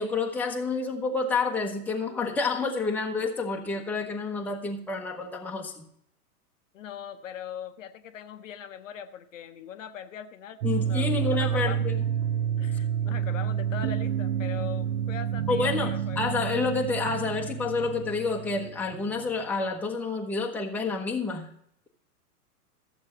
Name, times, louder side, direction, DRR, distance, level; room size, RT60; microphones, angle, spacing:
voice 1, 0.0-5.9 10.6-12.0 15.5-21.5, left 4 dB, 5° left, 0 dB, 0.9 m, -29 dB
voice 2, 6.7-10.6 10.8-11.9 12.6-16.2, left 8 dB, 55° left, 9 dB, 0.8 m, -40 dB
sound 1, 10.6-19.4, right 9 dB, 50° right, 0.5 m, -29 dB
14.0 x 7.4 x 4.2 m, 0.73 s
figure-of-eight pair, 105°, 47 cm